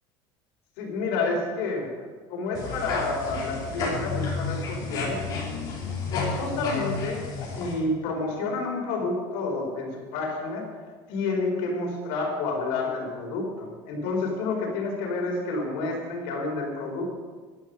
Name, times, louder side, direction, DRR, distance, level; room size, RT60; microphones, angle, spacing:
voice 1, 0.8-1.9 2.3-5.2 6.1-7.2 7.5-10.7 11.1-17.0, left 3 dB, 70° left, 0 dB, 4.6 m, -29 dB
sound 1, 2.5-7.7, left 4 dB, 35° left, 4.4 m, -31 dB
14.5 x 11.5 x 5.3 m, 1.5 s
cardioid pair, 175°, 12 cm